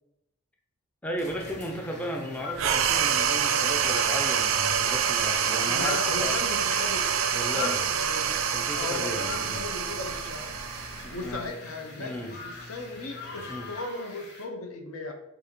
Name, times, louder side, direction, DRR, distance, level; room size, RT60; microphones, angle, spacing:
voice 1, 1.0-6.4 7.3-7.8 8.5-9.6 11.0-11.5 12.0-12.3 13.5-13.7, equal, 5° left, 1 dB, 0.4 m, -35 dB
sound 1, 1.1-13.9, left 2 dB, 35° left, 1.1 m, -49 dB
sound 2, 1.3-14.5, left 4 dB, 55° left, 1.2 m, -43 dB
sound 3, 2.6-11.5, right 7 dB, 70° right, 0.4 m, -26 dB
voice 2, 5.6-7.0 7.5-8.4 8.7-10.5 11.1-15.1, left 2 dB, 80° left, 2 dB, 0.9 m, -36 dB
6.2 x 2.7 x 3.0 m, 0.86 s
head